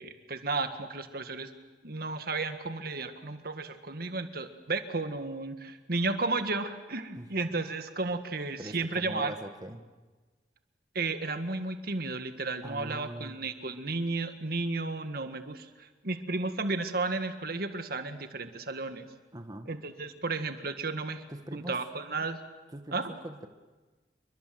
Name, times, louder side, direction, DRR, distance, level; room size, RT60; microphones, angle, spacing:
voice 1, 0.0-1.5 1.8-9.3 11.0-19.1 19.7-21.2 21.5-22.4 22.9-23.1, right 3 dB, 60° right, 8 dB, 1.8 m, -33 dB
voice 2, 8.6-9.8 12.6-13.4 19.3-19.7 21.3-21.8 22.7-23.5, right 1 dB, 20° right, 6 dB, 1.8 m, -41 dB
28.5 x 24.0 x 7.8 m, 1.3 s
head